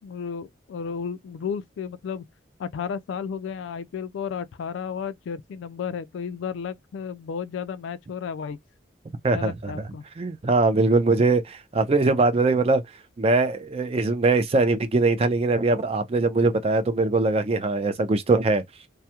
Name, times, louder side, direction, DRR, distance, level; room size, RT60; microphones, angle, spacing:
voice 1, 0.0-2.3 2.6-8.6 9.3-10.0, left 6 dB, 70° left, 0.3 m, -33 dB
voice 2, 9.2-9.7 10.2-12.8 13.2-18.6, right 3 dB, 30° right, 0.4 m, -21 dB
2.3 x 2.1 x 2.8 m
head